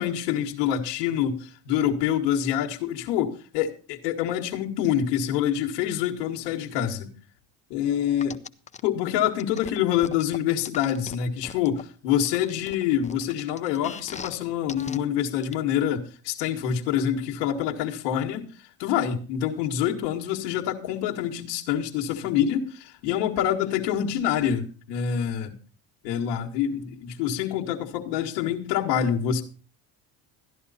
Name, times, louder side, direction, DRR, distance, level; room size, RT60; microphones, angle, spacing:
voice 1, 0.0-7.1 7.7-8.4 8.8-18.5 18.8-25.5 26.0-29.4, left 9 dB, 85° left, 1.6 m, -26 dB
sound 1, 8.2-8.8 9.4-11.8 12.2-14.4 14.7-15.0 15.4-15.5, left 6 dB, 15° left, 0.5 m, -39 dB
13.5 x 10.5 x 4.1 m
supercardioid pair, 95°, 47 cm